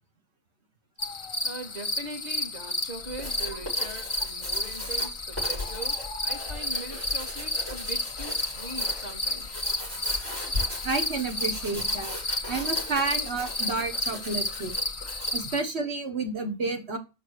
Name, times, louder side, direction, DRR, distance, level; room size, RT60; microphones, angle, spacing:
sound 1, 1.0-15.6, left 1 dB, 35° left, 0.7 m, -32 dB
voice 1, 1.4-9.6 15.4-15.5, right 2 dB, 35° right, 1.9 m, -41 dB
Writing, 3.0-15.5, left 1 dB, 80° right, 5.3 m, -38 dB
voice 2, 10.8-12.2 12.5-14.8 15.3-17.0, right 3 dB, 65° right, 1.7 m, -30 dB
6.1 x 5.2 x 6.5 m
omnidirectional pair, 1.2 m